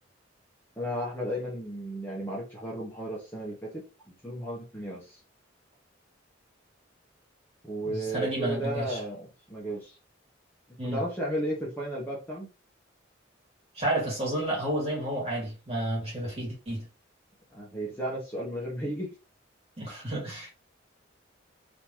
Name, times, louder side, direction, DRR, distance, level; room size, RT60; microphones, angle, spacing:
voice 1, 0.8-5.2 7.6-10.0 10.8-12.5 17.5-19.1, right 1 dB, 10° left, 1.1 m, -34 dB
voice 2, 7.8-9.0 10.8-11.0 13.7-16.9 19.8-20.5, right 1 dB, 30° right, 2.2 m, -31 dB
3.8 x 3.0 x 3.0 m
head